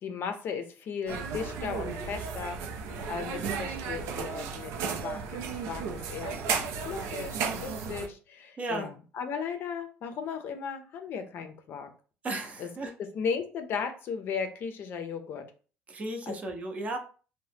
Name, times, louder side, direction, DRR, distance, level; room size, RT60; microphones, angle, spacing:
voice 1, 0.0-2.6 3.1-4.7 5.0-11.9 12.6-12.7 13.1-15.5 16.3-16.4, left 6 dB, 50° left, 7 dB, 0.5 m, -36 dB
sound 1, 1.1-8.1, right 5 dB, 80° right, 0.5 m, -34 dB
voice 2, 8.6-8.9 12.2-12.9 15.9-17.0, right 2 dB, 30° right, 4 dB, 0.6 m, -34 dB
2.7 x 2.1 x 3.3 m, 0.38 s
cardioid pair, 130°, 5 cm